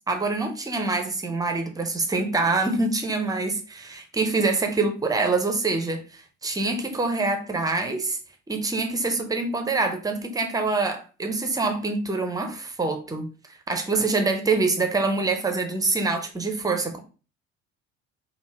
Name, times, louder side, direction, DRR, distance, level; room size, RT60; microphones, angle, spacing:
voice 1, 0.1-8.2 8.5-13.3 13.7-17.0, right 3 dB, 10° right, 0.5 m, -25 dB
3.5 x 2.1 x 3.2 m
figure-of-eight pair, 60°, 40 cm